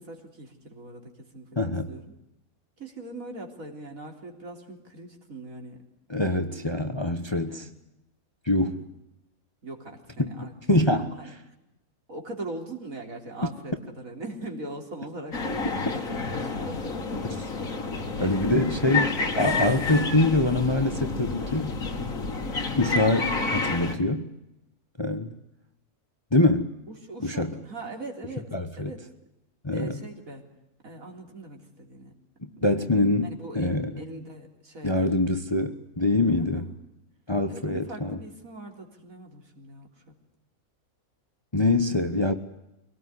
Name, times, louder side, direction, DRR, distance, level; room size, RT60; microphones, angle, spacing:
voice 1, 0.0-1.6 1.9-2.1 2.8-5.8 7.5-7.8 8.5-8.8 9.6-10.5 11.1-11.3 12.1-15.8 16.1-17.3 18.1-18.6 26.9-29.0 29.7-30.4 30.8-32.2 32.6-32.8 33.2-35.1 36.3-36.7 37.5-40.1 41.9-42.1, right 2 dB, 65° right, 3 dB, 4.0 m, -41 dB
voice 2, 1.6-1.9 6.1-7.7 8.4-8.8 10.2-11.1 18.2-21.7 22.7-24.3 25.0-25.3 26.3-26.7 27.2-27.6 28.5-28.9 29.6-30.0 32.6-33.9 34.8-36.7 37.3-38.2 41.5-42.3, left 2 dB, 20° left, 8 dB, 1.2 m, -24 dB
sound 1, 15.3-23.9, left 3 dB, 65° left, 2.5 m, -29 dB
24.5 x 18.5 x 9.7 m, 0.88 s
omnidirectional pair, 1.6 m